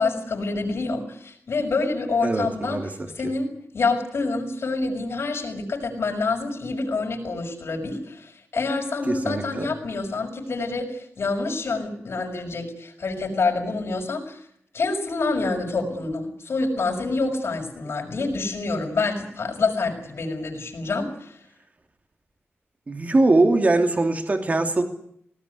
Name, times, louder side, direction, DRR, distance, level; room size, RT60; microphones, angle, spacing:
voice 1, 0.0-2.8 3.1-3.5 3.7-14.4 14.7-21.3, left 3 dB, 70° left, 3 dB, 6.2 m, -27 dB
voice 2, 2.2-2.9 3.2-3.3 9.1-9.7 22.9-24.8, right 2 dB, 35° right, 5 dB, 2.9 m, -21 dB
20.0 x 18.5 x 9.8 m, 0.69 s
wide cardioid pair, 150°, 5 cm